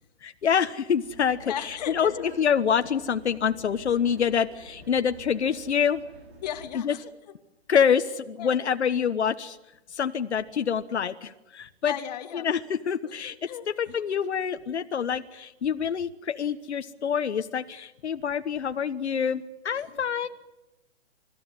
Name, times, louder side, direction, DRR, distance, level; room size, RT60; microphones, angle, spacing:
voice 1, 0.2-2.1 2.4-6.0 6.8-6.9 7.7-9.6 9.9-11.9 12.4-13.3 13.8-20.3, left 7 dB, 80° left, 8 dB, 1.3 m, -26 dB
sound 1, 1.0-6.7, right 3 dB, 70° right, 6.6 m, -49 dB
voice 2, 1.4-2.3 6.4-7.1 8.4-8.6 11.8-12.5 13.0-14.1 19.7-20.2, left 10 dB, 40° left, 6 dB, 2.3 m, -37 dB
29.0 x 14.5 x 9.8 m, 1.0 s
hypercardioid pair, 155°, 33 cm